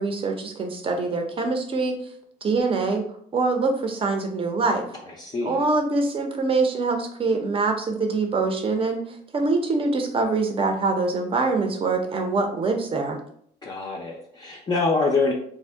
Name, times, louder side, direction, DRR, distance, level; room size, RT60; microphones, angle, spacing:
voice 1, 0.0-2.0 2.4-3.0 3.3-4.9 5.4-13.2, right 3 dB, 35° right, 4 dB, 0.6 m, -24 dB
voice 2, 5.0-5.6 13.6-15.3, left 3 dB, 25° left, -2 dB, 0.4 m, -25 dB
2.6 x 2.1 x 3.3 m, 0.63 s
cardioid pair, 110°, 17 cm